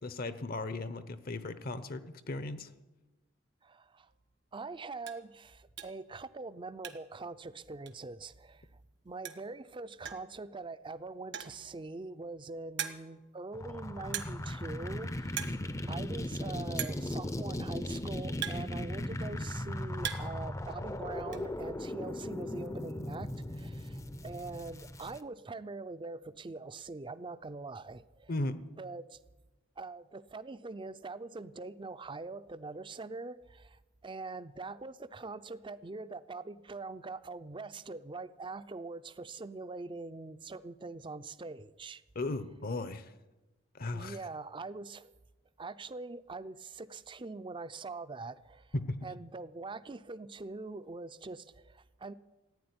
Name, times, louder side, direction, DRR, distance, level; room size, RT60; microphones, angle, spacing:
voice 1, 0.0-2.7 28.3-28.7 42.1-43.1 43.7-44.2 48.7-49.0, left 2 dB, 50° left, 12 dB, 0.8 m, -36 dB
voice 2, 3.6-4.1 4.5-8.7 9.0-28.3 28.8-29.2 29.8-42.0 43.9-45.1 45.6-48.7 49.0-52.1, right 3 dB, 25° right, 15 dB, 0.5 m, -43 dB
sound 1, 4.1-4.2 4.6-4.7 5.0-5.3 5.8-6.1 6.4-7.2 7.5-7.6 7.9-8.0 9.0-9.1 9.2-9.6 10.0-10.3 11.2-11.7 12.2-12.3 12.8-13.2 14.1-14.5 14.8-15.0 15.3-15.6 15.9-16.0 16.8-17.1 17.9-19.2 19.6-20.4 20.7-21.4, right 9 dB, 65° right, 1.3 m, -40 dB
sound 2, 13.5-25.2, left 1 dB, 15° left, 0.6 m, -38 dB
15.5 x 9.6 x 9.6 m, 1.1 s
head